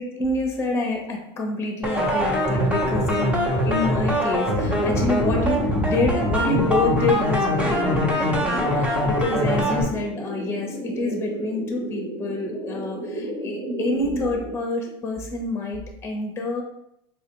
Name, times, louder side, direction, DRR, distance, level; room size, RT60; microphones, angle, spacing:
voice 1, 0.0-16.6, left 2 dB, 20° left, 2 dB, 0.8 m, -27 dB
sound 1, 1.8-9.8, left 1 dB, 10° right, 0.9 m, -23 dB
sound 2, 4.6-14.5, right 1 dB, 60° right, 0.9 m, -33 dB
4.1 x 2.4 x 2.9 m, 0.78 s
supercardioid pair, 115°, 14 cm